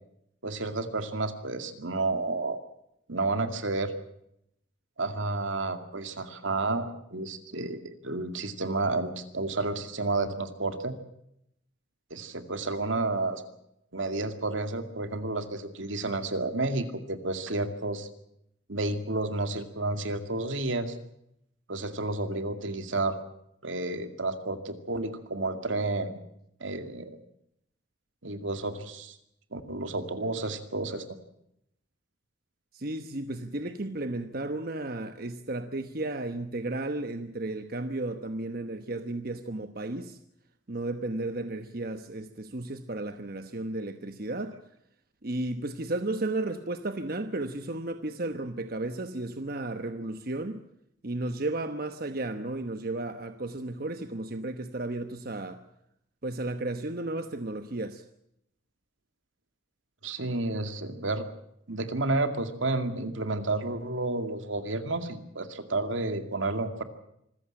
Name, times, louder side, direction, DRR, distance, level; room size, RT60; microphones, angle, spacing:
voice 1, 0.4-2.6 3.1-3.9 5.0-10.9 12.1-13.4 13.9-18.1 18.7-21.0 21.7-23.2 23.6-26.2 26.6-27.2 28.2-29.2 29.5-31.0 60.0-61.2 61.7-66.8, right 2 dB, 80° right, 2.3 m, -31 dB
voice 2, 32.7-40.2 40.7-44.6 45.2-50.6 51.0-55.6 56.2-58.0, right 2 dB, 50° right, 1.1 m, -33 dB
25.5 x 15.0 x 8.8 m
head